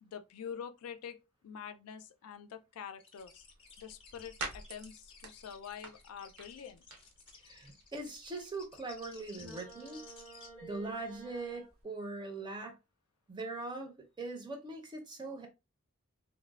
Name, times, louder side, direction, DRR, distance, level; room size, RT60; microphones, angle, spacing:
voice 1, 0.0-1.2 1.4-3.5 3.8-6.8, left 7 dB, 80° left, 0.3 m, -46 dB
sound 1, 3.0-10.5, left 5 dB, 25° left, 0.5 m, -57 dB
sound 2, 3.2-11.8, right 3 dB, 70° right, 0.7 m, -51 dB
voice 2, 7.4-10.0 10.6-12.7 13.3-13.9 14.2-15.5, right 3 dB, 20° right, 0.5 m, -41 dB
sound 3, 9.4-11.7, right 3 dB, 85° right, 1.4 m, -51 dB
3.0 x 2.0 x 2.3 m
head